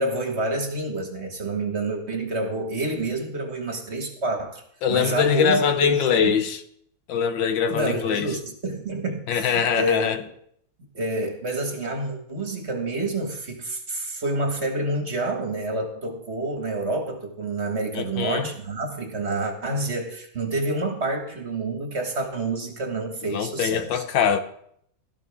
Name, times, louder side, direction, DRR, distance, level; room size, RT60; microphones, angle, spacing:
voice 1, 0.0-4.6 4.9-6.3 7.7-10.2 10.9-24.0, right 2 dB, 40° right, 1.8 m, -28 dB
voice 2, 4.8-6.6 7.1-8.3 9.3-10.2 18.0-18.5 23.2-24.4, left 7 dB, 90° left, 1.7 m, -23 dB
17.0 x 13.0 x 3.5 m
omnidirectional pair, 2.0 m